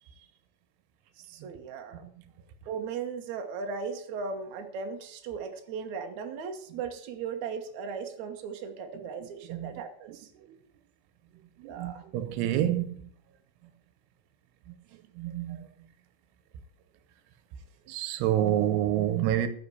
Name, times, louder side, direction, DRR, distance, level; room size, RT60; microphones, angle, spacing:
voice 1, 1.1-2.0 2.7-10.3 11.6-12.0 14.9-15.0 17.8-17.9, right 5 dB, 60° right, 2.3 m, -37 dB
voice 2, 8.9-9.8 10.1-10.6 11.6-13.1 14.7-15.9 17.9-19.5, right 11 dB, 85° right, 3.0 m, -29 dB
14.0 x 5.9 x 8.3 m
omnidirectional pair, 4.6 m